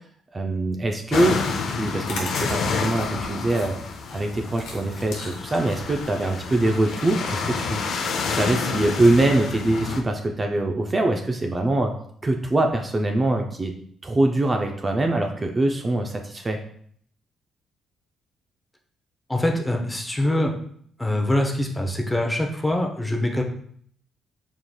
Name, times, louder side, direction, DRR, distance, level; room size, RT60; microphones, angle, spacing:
voice 1, 0.3-1.4 1.7-11.9 12.2-13.7 14.0-16.6, right 2 dB, 25° right, 3 dB, 0.5 m, -23 dB
sound 1, 1.1-10.0, left 5 dB, 70° left, 0.5 m, -29 dB
sound 2, 1.9-7.5, left 2 dB, 90° left, 0.9 m, -38 dB
voice 2, 19.3-20.5 21.0-23.4, left 1 dB, 10° left, 3 dB, 0.7 m, -24 dB
4.7 x 3.6 x 2.3 m, 0.62 s
cardioid pair, 90°, 0 cm